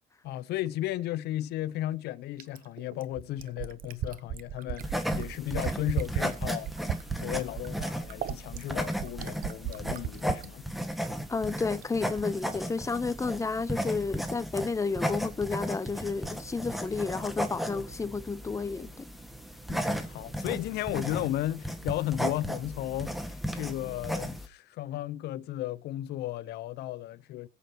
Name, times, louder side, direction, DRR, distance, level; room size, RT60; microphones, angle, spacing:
voice 1, 0.2-6.7 7.2-10.7 19.7-27.5, left 14 dB, 80° left, 0.9 m, -34 dB
Fill (with liquid), 2.4-10.5 11.8-11.9, right 10 dB, 60° right, 0.9 m, -35 dB
sound 1, 4.8-24.5, equal, ahead, 1.8 m, -35 dB
voice 2, 11.3-19.1, left 4 dB, 20° left, 0.8 m, -31 dB
22.5 x 8.5 x 3.0 m
cardioid pair, 110°, 17 cm